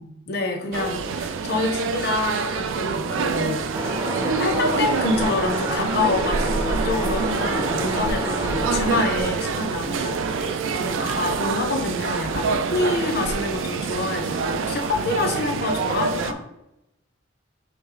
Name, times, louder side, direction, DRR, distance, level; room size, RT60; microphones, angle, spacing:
voice 1, 0.0-16.4, left 3 dB, 50° left, 4 dB, 0.7 m, -27 dB
sound 1, 0.7-16.3, right 5 dB, 75° right, 0.4 m, -26 dB
sound 2, 3.7-9.0, equal, 15° right, 0.5 m, -28 dB
3.5 x 3.1 x 4.9 m, 0.86 s
head